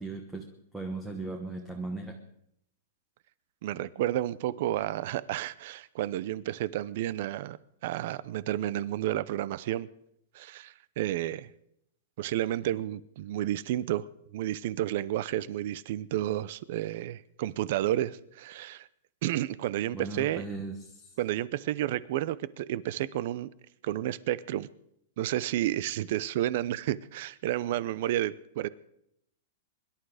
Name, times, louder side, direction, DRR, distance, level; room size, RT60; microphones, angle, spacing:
voice 1, 0.0-2.2 19.9-21.2, right 3 dB, 5° right, 1.1 m, -38 dB
voice 2, 3.6-7.6 7.8-9.9 10.3-11.5 12.2-18.9 19.2-20.4 21.2-23.5 23.8-24.7 25.2-28.7, right 13 dB, 50° right, 0.6 m, -31 dB
24.0 x 11.5 x 4.9 m
supercardioid pair, 165°, 0 cm